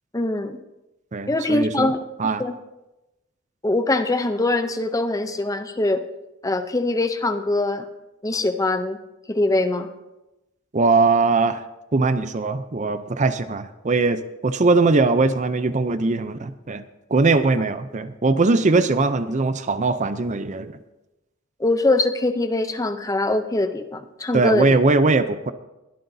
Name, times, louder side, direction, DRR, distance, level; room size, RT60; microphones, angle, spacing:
voice 1, 0.1-0.6 1.3-2.0 2.4-2.6 3.6-6.0 6.4-7.9 8.2-9.0 9.3-9.9 21.6-24.8, left 2 dB, 15° left, 8 dB, 0.6 m, -22 dB
voice 2, 1.1-1.9 2.2-2.4 10.7-11.6 11.9-16.8 17.1-20.7 24.3-25.5, right 3 dB, 35° right, 11 dB, 0.5 m, -20 dB
21.5 x 12.5 x 2.7 m, 0.98 s
head